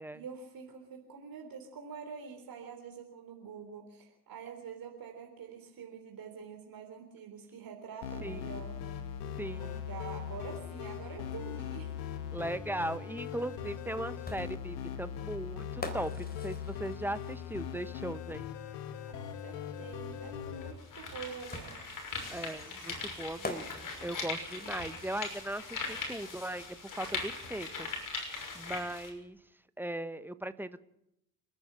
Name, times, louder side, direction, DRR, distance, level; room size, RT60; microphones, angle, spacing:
voice 1, 0.1-8.8 9.4-12.0 19.1-21.8, right 6 dB, 45° right, 3 dB, 3.8 m, -46 dB
sound 1, 8.0-20.7, left 8 dB, 65° left, 1.8 m, -40 dB
voice 2, 8.2-8.5 9.4-9.8 12.3-18.4 22.3-28.2 28.5-29.4 29.8-30.8, right 1 dB, 5° right, 13 dB, 1.2 m, -38 dB
sound 2, 14.3-17.9 19.4-19.5 21.5-25.4, left 2 dB, 20° left, 4.0 m, -45 dB
sound 3, 19.9-20.0 20.6-29.1, left 4 dB, 40° left, 6.4 m, -40 dB
29.0 x 10.0 x 9.1 m, 0.85 s
figure-of-eight pair, 50°, 46 cm